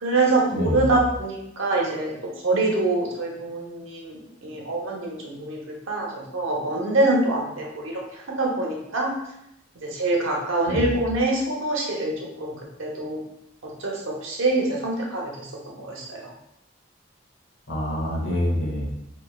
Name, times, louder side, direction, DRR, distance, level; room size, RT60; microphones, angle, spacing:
voice 1, 0.0-2.1 2.4-5.6 5.9-9.1 9.8-12.1 12.4-13.2 13.6-15.5 15.8-16.3, right 2 dB, 80° right, -2 dB, 0.8 m, -25 dB
voice 2, 0.5-0.9 10.7-10.9 17.7-18.9, equal, 85° left, -3 dB, 1.0 m, -26 dB
3.1 x 2.6 x 2.3 m, 0.80 s
head